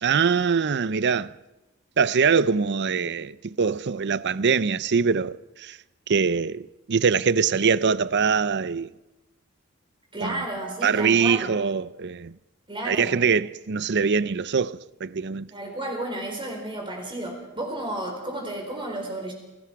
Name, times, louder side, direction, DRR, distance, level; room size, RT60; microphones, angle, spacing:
voice 1, 0.0-1.3 2.0-5.8 6.1-8.9 10.2-10.4 10.8-12.3 12.8-15.5, right 5 dB, 55° right, 0.6 m, -23 dB
voice 2, 10.1-11.5 12.7-13.2 15.5-19.3, right 1 dB, 25° right, 4.7 m, -32 dB
28.5 x 19.5 x 4.8 m
head